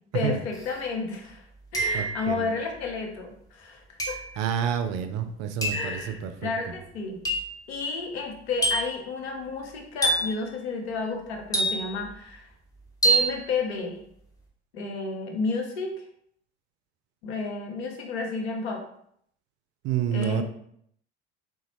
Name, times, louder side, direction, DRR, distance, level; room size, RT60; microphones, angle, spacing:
voice 1, 0.1-1.5 1.7-4.2 5.7-7.2 7.7-12.5 13.0-14.0 14.7-15.9 17.2-18.8 20.1-20.4, left 4 dB, 70° left, 2 dB, 0.8 m, -31 dB
sound 1, 0.6-0.7 1.7-2.3 4.0-4.3 5.6-5.9 7.2-7.6 8.6-9.0 10.0-10.4 11.5-12.1 13.0-13.4, right 2 dB, 10° left, 0.9 m, -25 dB
voice 2, 1.9-2.5 4.4-6.8 19.8-20.4, right 8 dB, 50° right, 8 dB, 0.5 m, -29 dB
3.9 x 2.3 x 2.9 m, 0.69 s
figure-of-eight pair, 65°, 33 cm